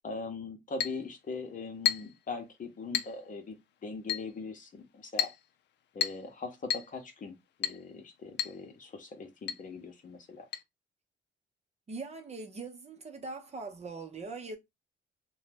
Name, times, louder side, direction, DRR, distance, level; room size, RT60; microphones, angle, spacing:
voice 1, 0.0-3.6 3.8-5.3 5.9-10.5, left 4 dB, 40° left, 0.8 m, -41 dB
Chink clink, 0.8-1.0 1.9-2.2 2.9-3.2 4.1-4.3 5.2-5.4 6.0-6.3 6.7-6.9 7.6-7.8 8.4-8.6 8.9-9.0 9.5-9.6 10.5-10.6, left 10 dB, 60° left, 0.5 m, -31 dB
voice 2, 11.9-14.6, right 3 dB, 35° right, 0.7 m, -41 dB
2.7 x 2.2 x 3.2 m
cardioid pair, 90°, 20 cm